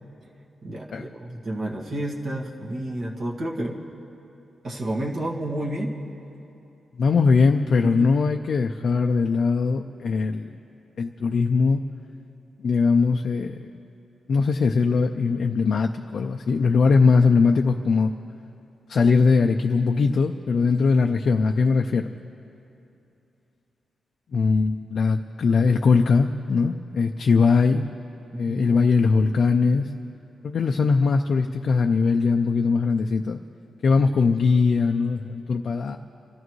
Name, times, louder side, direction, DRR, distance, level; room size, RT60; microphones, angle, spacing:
voice 1, 0.6-3.8 4.6-5.9 7.9-8.1 28.3-28.7, right 1 dB, 45° right, -1 dB, 1.8 m, -30 dB
voice 2, 7.0-10.5 11.0-11.8 12.6-13.6 14.3-18.1 18.9-22.1 24.3-27.9 28.3-29.9 30.4-33.4 33.8-36.0, left 4 dB, 55° left, 4 dB, 0.4 m, -20 dB
28.5 x 14.0 x 3.2 m, 2.9 s
wide cardioid pair, 150°, 0 cm